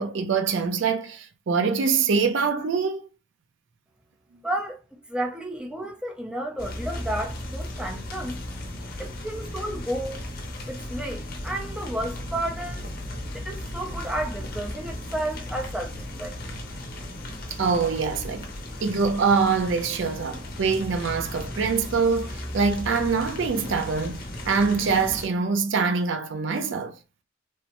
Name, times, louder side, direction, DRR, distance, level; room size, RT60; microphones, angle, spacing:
voice 1, 0.0-3.1 17.6-18.5 18.8-27.0, right 5 dB, 65° right, 0.4 m, -24 dB
voice 2, 4.4-4.8 5.1-8.4 9.0-10.2 10.7-12.9 13.1-16.4, right 1 dB, 5° right, 0.5 m, -32 dB
sound 1, 6.6-25.3, left 1 dB, 50° left, 0.6 m, -36 dB
3.3 x 2.0 x 2.9 m
head